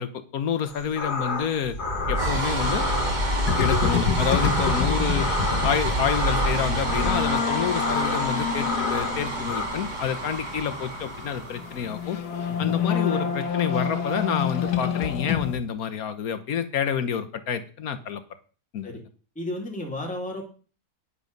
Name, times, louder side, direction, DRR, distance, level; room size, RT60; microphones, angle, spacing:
voice 1, 0.0-1.7 2.1-2.9 3.6-5.3 5.6-12.2 12.6-18.2 18.7-18.9, left 7 dB, 65° left, 10 dB, 1.5 m, -28 dB
sound 1, 0.7-9.7, left 3 dB, 30° left, 1.8 m, -32 dB
sound 2, 1.6-12.1, right 1 dB, 30° right, 2.2 m, -28 dB
sound 3, 3.5-15.6, left 7 dB, 85° left, 1.6 m, -28 dB
voice 2, 19.4-20.4, left 1 dB, 5° left, 0 dB, 2.4 m, -33 dB
9.9 x 8.0 x 5.2 m, 0.39 s
omnidirectional pair, 1.7 m